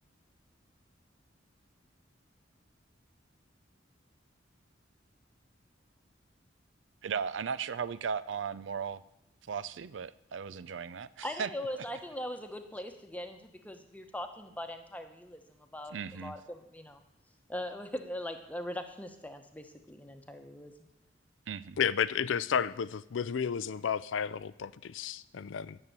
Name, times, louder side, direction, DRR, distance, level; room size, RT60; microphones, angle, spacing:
voice 1, 7.0-9.0 9.5-11.5 15.9-16.3 21.5-21.8, right 6 dB, 75° right, 17 dB, 0.5 m, -36 dB
voice 2, 11.2-17.0 17.5-20.7, left 1 dB, 10° left, 6 dB, 1.0 m, -41 dB
voice 3, 21.8-25.8, left 7 dB, 85° left, 17 dB, 0.4 m, -32 dB
9.7 x 6.8 x 8.9 m, 0.81 s
head